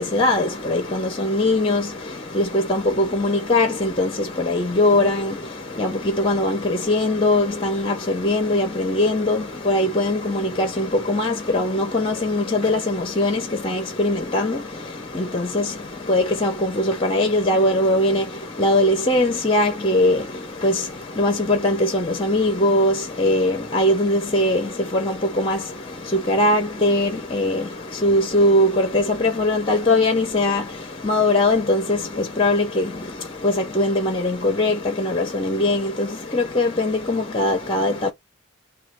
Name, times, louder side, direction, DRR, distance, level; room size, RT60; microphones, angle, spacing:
voice 1, 0.0-38.1, left 1 dB, 25° left, 0.6 m, -21 dB
3.1 x 2.3 x 4.3 m
head